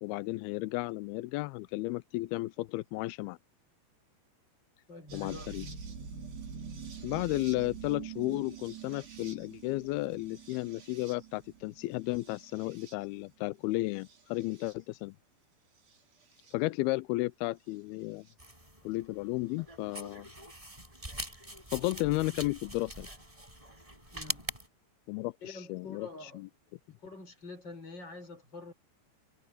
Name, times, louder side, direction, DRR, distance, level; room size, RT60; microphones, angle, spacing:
voice 1, 0.0-3.4 5.1-5.7 7.0-15.2 16.5-18.3 18.8-20.3 21.7-23.1 25.1-26.5, left 20 dB, 90° left, 2.2 m, -33 dB
voice 2, 4.9-5.5 24.1-24.5 25.4-26.4 26.9-28.7, left 3 dB, 25° left, 6.7 m, -46 dB
sound 1, 5.1-13.2 14.0-14.7 15.9-16.5 18.3-18.4 20.1-20.2, right 6 dB, 70° right, 7.6 m, -46 dB
sound 2, 18.4-24.7, equal, 5° right, 5.9 m, -43 dB
omnidirectional pair, 5.0 m